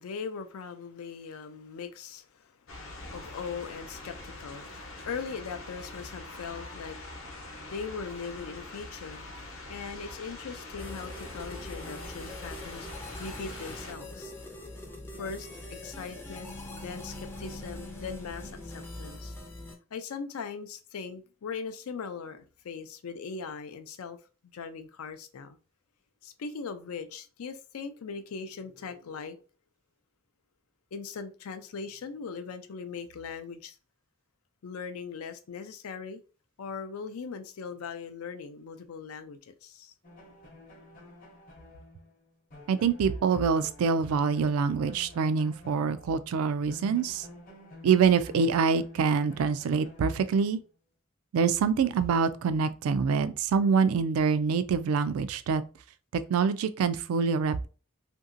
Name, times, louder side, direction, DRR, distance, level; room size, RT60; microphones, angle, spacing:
voice 1, 0.0-2.5 2.9-7.0 7.7-9.2 9.7-12.9 13.2-14.3 15.1-15.5 15.8-19.3 19.9-24.2 24.5-25.6 26.2-29.4 30.9-33.8 34.6-36.2 36.6-39.9, left 5 dB, 90° left, 0.4 m, -40 dB
sound 1, 2.7-13.9, left 2 dB, 70° left, 0.8 m, -43 dB
sound 2, 10.8-19.8, left 1 dB, 10° left, 0.4 m, -42 dB
sound 3, 40.0-46.4 46.7-50.6, left 1 dB, 40° left, 0.7 m, -51 dB
voice 2, 42.7-47.3 47.8-50.6 51.3-55.6 56.1-57.6, right 5 dB, 90° right, 0.3 m, -25 dB
2.8 x 2.6 x 2.5 m
head